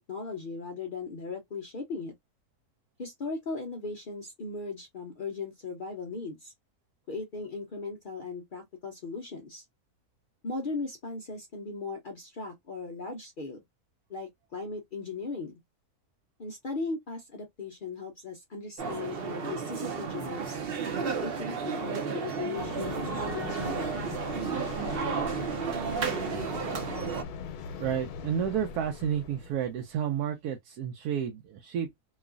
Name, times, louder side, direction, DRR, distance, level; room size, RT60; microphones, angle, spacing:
voice 1, 0.1-2.1 3.0-6.5 7.1-9.6 10.4-13.6 14.1-15.6 16.4-20.6 21.0-24.0, left 3 dB, 65° left, 0.5 m, -38 dB
sound 1, 18.8-27.2, right 6 dB, 55° right, 0.6 m, -33 dB
sound 2, 22.6-29.9, left 6 dB, 85° left, 1.1 m, -40 dB
voice 2, 27.8-31.9, right 8 dB, 85° right, 1.1 m, -31 dB
3.0 x 2.3 x 2.3 m
omnidirectional pair, 1.6 m